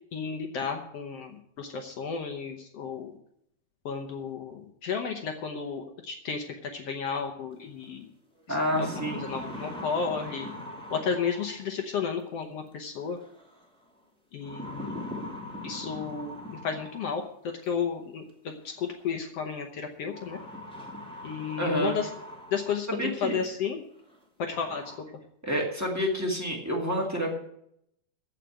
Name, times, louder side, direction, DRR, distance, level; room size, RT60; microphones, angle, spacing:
voice 1, 0.1-3.1 3.8-8.1 8.5-10.5 10.9-13.2 14.3-14.9 15.6-17.2 17.6-20.4 21.2-22.1 22.5-23.8 24.4-24.8, left 6 dB, 80° left, 4 dB, 1.4 m, -33 dB
sound 1, 7.8-7.9 8.4-11.8 13.2-13.6 14.4-17.2 18.5-18.6 20.1-23.0 23.4-23.5 24.1-24.2 24.4-25.0, left 1 dB, ahead, 1.7 m, -41 dB
voice 2, 8.5-9.3 21.6-22.0 22.9-23.4 25.4-27.3, equal, 15° right, -1 dB, 0.5 m, -28 dB
15.0 x 5.0 x 9.0 m, 0.73 s
omnidirectional pair, 4.3 m